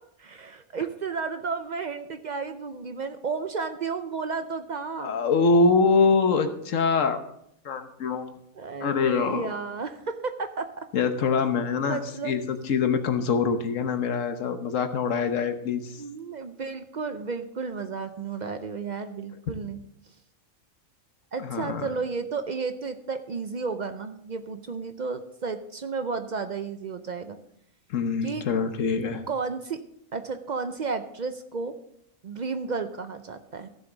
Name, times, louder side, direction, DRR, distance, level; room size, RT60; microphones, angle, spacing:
voice 1, 0.2-5.1 8.6-10.9 11.9-12.3 16.0-19.8 21.3-27.4 28.2-28.5 29.3-29.8 30.1-31.8 32.2-33.7, right 4 dB, 60° right, 9 dB, 0.4 m, -32 dB
voice 2, 5.0-7.2 7.6-8.3 8.8-9.5 10.9-16.0 21.4-21.9 27.9-29.2, left 4 dB, 65° left, 8 dB, 1.3 m, -24 dB
15.5 x 7.0 x 3.9 m, 0.74 s
omnidirectional pair, 1.4 m